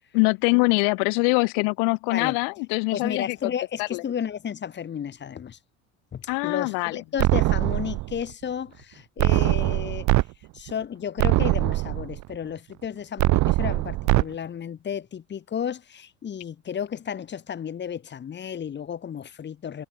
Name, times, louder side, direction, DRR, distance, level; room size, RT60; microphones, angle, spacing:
voice 1, 0.1-3.4 3.9-4.0 6.3-7.0, left 40 dB or more, 65° left, 1.2 m, -23 dB
voice 2, 2.9-5.6 6.1-10.1 10.5-19.9, left 8 dB, 25° left, 0.8 m, -33 dB
sound 1, 7.2-8.2 9.2-10.2 10.7-10.8 11.2-12.2 13.2-14.2, right 19 dB, 45° right, 0.6 m, -22 dB
hypercardioid pair, 65°, 40 cm